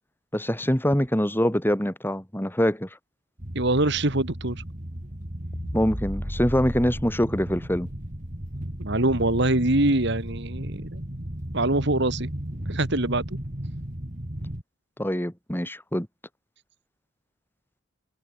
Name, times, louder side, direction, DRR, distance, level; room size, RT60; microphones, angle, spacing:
voice 1, 0.3-2.9 5.7-7.9 15.0-16.1, equal, 10° left, 3.5 m, -24 dB
sound 1, 3.4-14.6, right 1 dB, 40° right, 2.7 m, -35 dB
voice 2, 3.5-4.6 8.8-11.0 11.5-12.3 12.7-13.4, right 2 dB, 60° right, 2.6 m, -24 dB
sound 2, 5.5-10.0, equal, 25° left, 5.4 m, -38 dB
head